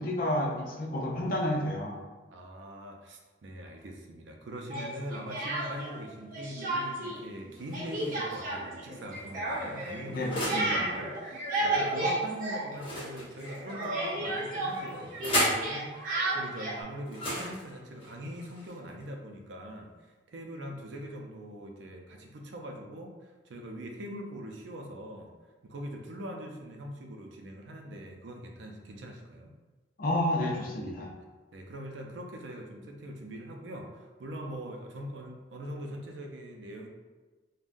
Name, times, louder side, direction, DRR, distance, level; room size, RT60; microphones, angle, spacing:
voice 1, 0.0-2.0 10.1-11.0 30.0-31.1, left 1 dB, 50° left, -2 dB, 0.6 m, -30 dB
voice 2, 2.3-25.3 25.6-29.5 31.5-36.9, equal, 85° right, 2 dB, 0.5 m, -42 dB
Speech, 4.7-6.0 6.3-7.2 7.4-13.1 13.4-16.8, right 2 dB, 50° right, 0.7 m, -32 dB
sound 1, 7.6-8.3 9.1-10.7 12.7-13.9 14.7-15.7 17.1-19.0, left 1 dB, 30° left, 1.0 m, -35 dB
3.6 x 2.1 x 2.5 m, 1.3 s
head